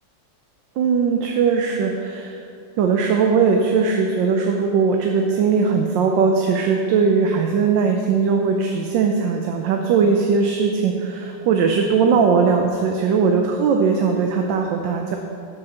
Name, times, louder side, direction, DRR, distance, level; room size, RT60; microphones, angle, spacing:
voice 1, 0.8-2.4 2.8-15.2, right 5 dB, 85° right, 3 dB, 1.4 m, -19 dB
10.5 x 5.8 x 6.4 m, 2.5 s
omnidirectional pair, 2.0 m